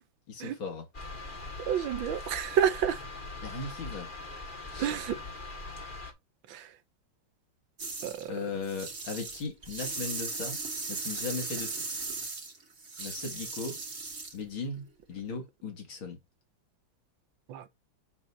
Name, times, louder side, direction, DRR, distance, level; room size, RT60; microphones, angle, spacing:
voice 1, 0.3-0.9 3.4-4.1 4.7-4.9 8.3-10.6 10.9-12.0 13.0-13.8 14.3-16.2, left 4 dB, 85° left, 3.1 m, -37 dB
sound 1, 0.9-6.1, left 2 dB, 25° left, 2.0 m, -41 dB
voice 2, 1.7-3.0 4.8-5.2 6.5-6.6 8.0-8.3 17.5-17.7, right 9 dB, 75° right, 1.5 m, -29 dB
sound 2, 7.8-8.3 8.6-14.4, right 3 dB, 45° right, 2.7 m, -37 dB
7.4 x 7.1 x 2.8 m
omnidirectional pair, 2.2 m